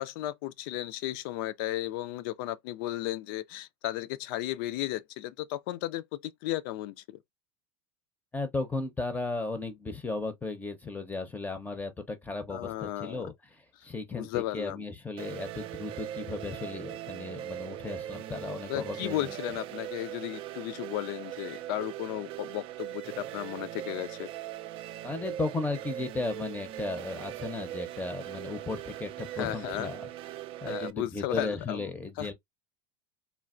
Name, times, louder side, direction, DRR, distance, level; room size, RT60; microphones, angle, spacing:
voice 1, 0.0-7.2 12.5-13.2 14.1-14.8 18.7-24.3 29.4-29.9 30.7-31.8 32.2-32.3, left 14 dB, 70° left, 0.4 m, -34 dB
voice 2, 8.3-19.3 25.0-30.1 30.6-32.3, left 3 dB, 15° left, 0.6 m, -35 dB
sound 1, 15.2-30.9, right 13 dB, 45° right, 0.3 m, -40 dB
3.2 x 2.3 x 2.3 m
hypercardioid pair, 100°, 12 cm